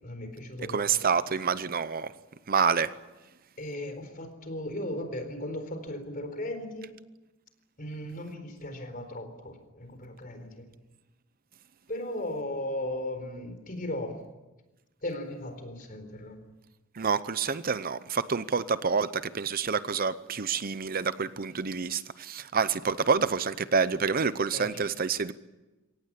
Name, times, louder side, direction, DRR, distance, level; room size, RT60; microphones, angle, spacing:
voice 1, 0.0-1.1 3.6-6.9 7.8-10.6 11.9-14.2 15.0-16.4 24.4-24.7, left 1 dB, 45° left, 4.2 m, -37 dB
voice 2, 0.7-2.1 2.5-2.9 16.9-25.3, right 5 dB, 45° right, 0.7 m, -28 dB
23.0 x 18.0 x 10.0 m
head